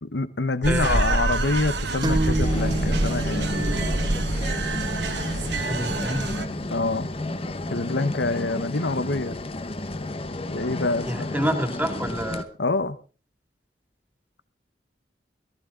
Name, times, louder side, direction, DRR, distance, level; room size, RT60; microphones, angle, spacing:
voice 1, 0.0-3.5 6.7-7.1 7.7-9.4 10.4-11.4 12.6-13.0, left 3 dB, 75° left, 1.0 m, -26 dB
sound 1, 0.6-6.5, right 2 dB, 75° right, 1.5 m, -26 dB
voice 2, 0.7-1.2 5.6-6.5 11.0-12.5, right 1 dB, 10° right, 2.2 m, -28 dB
sound 2, 2.0-9.5, right 1 dB, 25° right, 1.7 m, -32 dB
sound 3, 2.4-12.4, left 2 dB, 35° left, 1.0 m, -32 dB
18.0 x 14.5 x 3.7 m
head